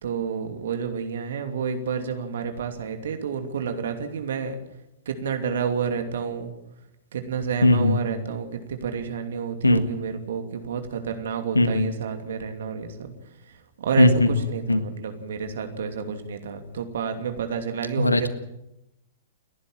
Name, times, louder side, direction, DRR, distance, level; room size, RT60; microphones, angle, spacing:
voice 1, 0.0-4.6 5.1-6.5 7.1-13.1 13.8-18.3, right 6 dB, 60° right, 7 dB, 2.8 m, -30 dB
voice 2, 7.6-8.0 9.6-9.8 11.6-11.9 14.0-14.8 18.0-18.3, left 2 dB, 85° left, 12 dB, 1.7 m, -19 dB
29.0 x 11.0 x 9.1 m, 0.89 s
figure-of-eight pair, 105°, 0 cm